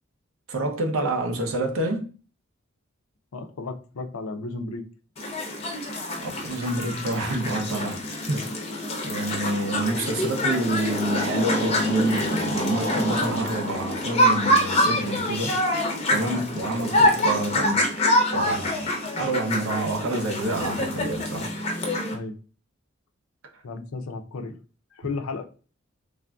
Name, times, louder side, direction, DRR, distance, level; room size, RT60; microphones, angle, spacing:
voice 1, 0.5-2.1 6.2-8.5 9.0-15.6 16.1-17.9 18.3-21.5, right 2 dB, 75° right, 0.6 m, -28 dB
voice 2, 3.3-4.8 16.2-16.4 22.1-22.4 23.6-24.6 24.9-25.4, left 3 dB, 80° left, 0.4 m, -34 dB
sound 1, 5.2-22.1, left 1 dB, 30° left, 0.6 m, -25 dB
3.4 x 2.5 x 2.2 m
head